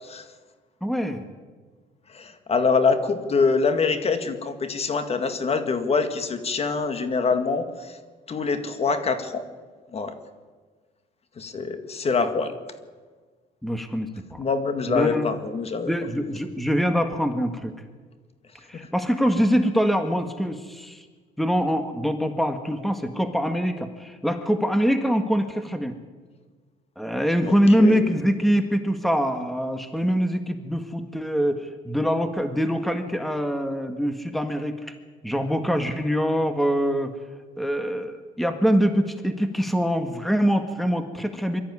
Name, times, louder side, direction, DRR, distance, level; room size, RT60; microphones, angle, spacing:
voice 1, 0.8-1.2 13.6-14.4 14.9-15.3 15.9-17.7 18.7-21.1 21.4-26.0 27.0-34.9 35.2-37.2 37.6-41.6, equal, ahead, 7 dB, 1.7 m, -24 dB
voice 2, 2.1-8.0 8.3-9.4 9.9-10.1 11.4-12.5 14.4-15.9 18.7-18.9 27.4-28.1, left 4 dB, 35° left, 9 dB, 1.9 m, -25 dB
23.0 x 13.5 x 9.8 m, 1.4 s
cardioid pair, 110°, 17 cm